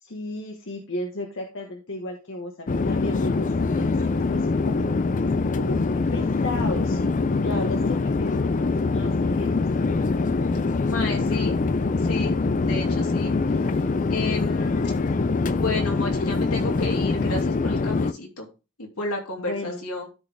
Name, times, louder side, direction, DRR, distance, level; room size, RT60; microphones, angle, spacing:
voice 1, 0.0-5.0 5.5-7.0 7.4-10.2 19.4-19.8, left 1 dB, 55° left, 3 dB, 1.2 m, -34 dB
Chatter / Fixed-wing aircraft airplane, 2.7-18.1, left 3 dB, 35° left, 0.4 m, -24 dB
voice 2, 7.5-7.9 10.8-11.6 12.0-12.4 12.6-14.8 15.5-18.5 18.8-20.1, left 2 dB, 80° left, 1 dB, 2.8 m, -32 dB
13.0 x 4.5 x 3.5 m, 0.30 s
head